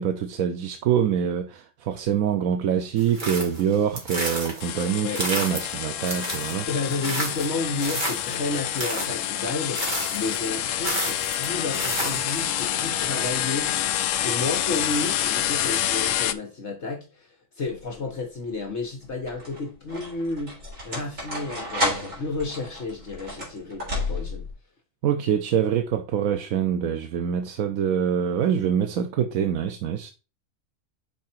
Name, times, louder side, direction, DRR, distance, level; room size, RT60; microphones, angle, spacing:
voice 1, 0.0-6.7 25.0-30.1, right 8 dB, 85° right, 1.1 m, -25 dB
sound 1, 3.0-12.6, right 2 dB, 35° right, 2.1 m, -32 dB
sound 2, 4.6-16.3, left 11 dB, 75° left, 0.9 m, -28 dB
voice 2, 6.7-17.3 17.6-24.4, left 3 dB, 55° left, 1.4 m, -31 dB
sound 3, 17.7-18.2 19.0-24.5, left 1 dB, 70° right, 3.6 m, -32 dB
5.9 x 4.7 x 4.2 m
omnidirectional pair, 1.4 m